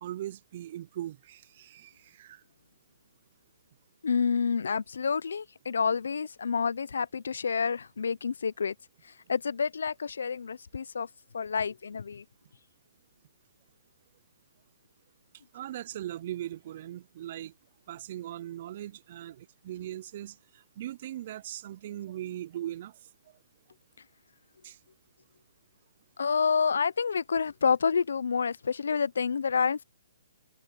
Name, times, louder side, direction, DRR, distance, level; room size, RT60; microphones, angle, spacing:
voice 1, 0.0-2.4 15.5-17.5 17.9-20.4 20.8-22.9 24.6-24.8, right 12 dB, 45° right, 0.5 m, -39 dB
voice 2, 4.0-8.7 9.0-11.1 11.3-12.2 26.2-29.8, left 6 dB, 75° left, 0.6 m, -28 dB
hypercardioid pair, 145°, 0 cm